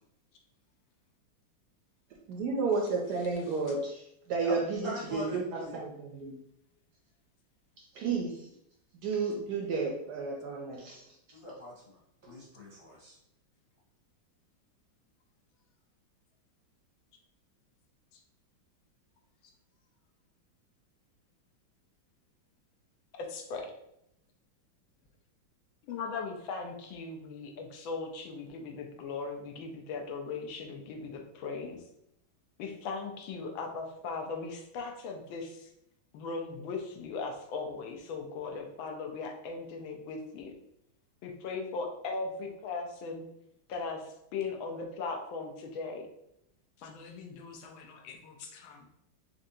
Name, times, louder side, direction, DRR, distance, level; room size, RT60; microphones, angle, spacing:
voice 1, 2.3-6.4 7.9-8.5 9.0-11.0, right 4 dB, 75° right, -1 dB, 0.9 m, -32 dB
voice 2, 4.8-5.8 11.3-13.2, left 1 dB, 45° left, -6 dB, 0.3 m, -42 dB
voice 3, 23.1-23.7 25.9-31.8 32.6-35.7 36.1-40.6 41.2-43.2 43.7-46.1 46.8-48.9, left 4 dB, 80° left, 2 dB, 1.4 m, -38 dB
4.3 x 2.6 x 2.7 m, 0.77 s
omnidirectional pair, 2.2 m